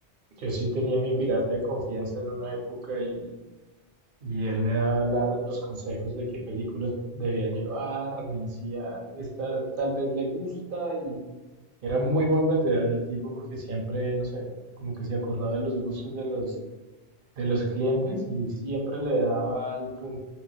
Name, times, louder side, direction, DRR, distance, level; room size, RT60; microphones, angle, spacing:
voice 1, 0.4-3.4 4.2-11.2 11.8-14.4 14.8-16.5 17.4-20.2, right 1 dB, 55° right, 0 dB, 0.8 m, -28 dB
2.3 x 2.2 x 3.8 m, 1.2 s
omnidirectional pair, 1.2 m